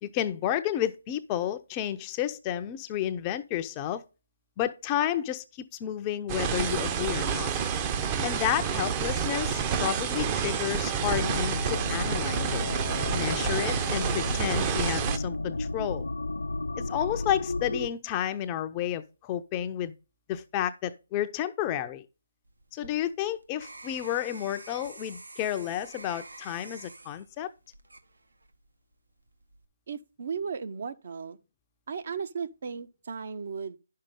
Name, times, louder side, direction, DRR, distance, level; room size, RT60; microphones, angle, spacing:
voice 1, 0.0-4.0 4.6-5.4 5.8-7.5 8.2-12.6 13.1-16.1 16.8-19.9 20.3-22.1 22.7-27.5, left 11 dB, 20° left, 0.6 m, -31 dB
sound 1, 6.3-15.2, right 7 dB, 20° right, 0.8 m, -29 dB
sound 2, 11.0-17.9, left 2 dB, 80° left, 0.8 m, -33 dB
sound 3, 22.4-28.7 29.2-29.6, right 2 dB, 80° right, 1.5 m, -48 dB
voice 2, 29.9-31.4 31.9-33.8, right 6 dB, 50° right, 0.9 m, -35 dB
10.5 x 6.6 x 3.6 m
figure-of-eight pair, 150°, 0 cm